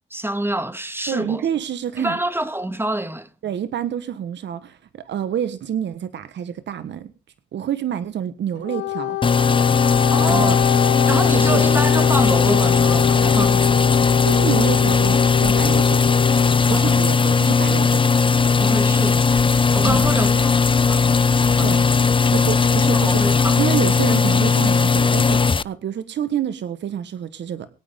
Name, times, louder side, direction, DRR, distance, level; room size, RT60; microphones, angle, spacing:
voice 1, 0.1-1.5 2.0-3.3 10.1-10.6 11.1-13.9 16.7-17.0 18.6-19.4 19.7-21.2 21.5-21.8 22.9-23.6, right 1 dB, 10° right, 1.9 m, -27 dB
voice 2, 1.1-2.2 3.4-7.1 7.5-9.2 10.3-10.6 11.3-11.6 14.2-16.0 16.7-18.0 19.8-20.4 21.6-21.9 22.3-23.2 23.6-27.7, right 9 dB, 75° right, 1.5 m, -27 dB
Wind instrument woodwind instrument, 8.6-16.6, left 18 dB, 85° left, 0.6 m, -25 dB
sound 1, 9.2-25.6, left 5 dB, 25° left, 0.6 m, -17 dB
23.5 x 9.0 x 3.8 m
supercardioid pair, 50°, 19 cm